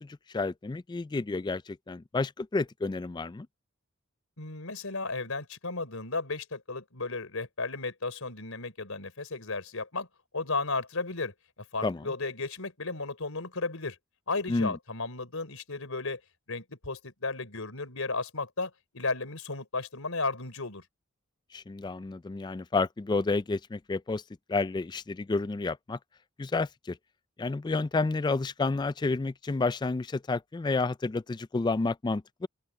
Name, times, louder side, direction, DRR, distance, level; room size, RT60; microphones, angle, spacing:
voice 1, 0.0-3.5 11.8-12.1 14.5-14.8 21.5-24.2 24.5-26.0 26.4-27.0 27.4-32.5, left 3 dB, 20° left, 0.3 m, -30 dB
voice 2, 4.4-10.1 10.3-11.3 11.7-14.0 14.3-16.2 16.5-20.9, left 3 dB, 80° left, 3.7 m, -34 dB
open air
head